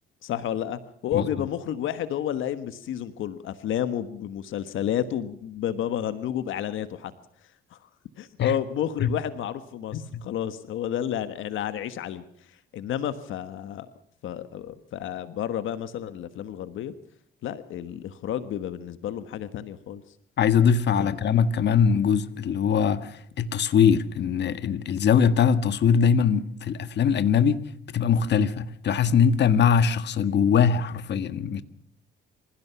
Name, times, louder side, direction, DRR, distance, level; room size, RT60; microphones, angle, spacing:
voice 1, 0.2-7.1 7.7-7.8 8.2-12.2 12.5-13.9 14.2-16.9 17.4-20.0 20.9-21.2, left 10 dB, 80° left, 1.4 m, -31 dB
voice 2, 20.4-31.6, left 7 dB, 60° left, 1.5 m, -22 dB
26.5 x 16.0 x 6.9 m
cardioid pair, 90°, 20 cm